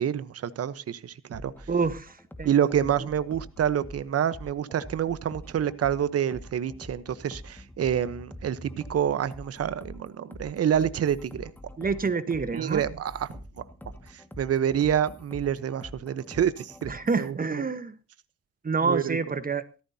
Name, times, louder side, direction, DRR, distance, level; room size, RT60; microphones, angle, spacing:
voice 1, 0.0-1.5 2.4-11.5 12.5-13.3 14.4-16.9 17.2-17.6 18.8-19.2, right 9 dB, 50° right, 14 dB, 1.1 m, -27 dB
sound 1, 1.3-17.3, left 1 dB, 5° left, 1.9 m, -45 dB
voice 2, 1.7-2.5 11.8-12.8 16.9-17.9 18.6-19.6, right 4 dB, 30° right, 12 dB, 1.2 m, -27 dB
17.0 x 14.5 x 2.8 m, 0.33 s
cardioid pair, 90°, 30 cm